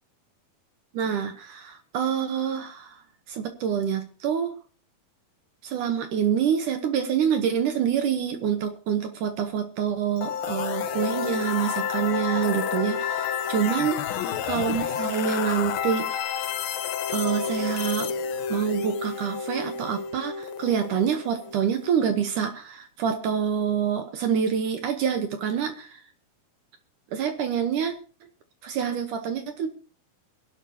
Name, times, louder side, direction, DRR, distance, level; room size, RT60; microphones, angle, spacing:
voice 1, 0.9-3.0 3.3-4.6 5.6-14.0 14.4-16.2 17.1-18.1 18.5-26.0 27.1-27.9 28.6-29.7, right 8 dB, 65° right, 7 dB, 2.4 m, -26 dB
sound 1, 10.2-22.0, left 7 dB, 80° left, 2.8 m, -30 dB
22.0 x 12.0 x 2.9 m, 0.36 s
omnidirectional pair, 4.3 m